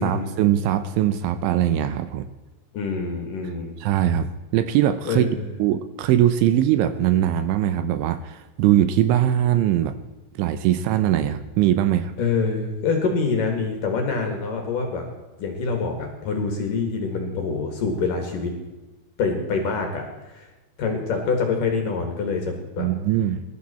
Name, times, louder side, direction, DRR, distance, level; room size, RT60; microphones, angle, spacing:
voice 1, 0.0-2.3 3.8-9.9 10.4-12.1 22.8-23.4, right 11 dB, 80° right, 11 dB, 2.9 m, -21 dB
voice 2, 2.7-3.7 5.0-5.5 12.2-15.1 15.4-18.5 19.2-20.1 20.3-20.5 20.8-22.9, left 4 dB, 55° left, 3 dB, 2.8 m, -25 dB
20.0 x 12.0 x 4.3 m, 1.1 s
omnidirectional pair, 5.7 m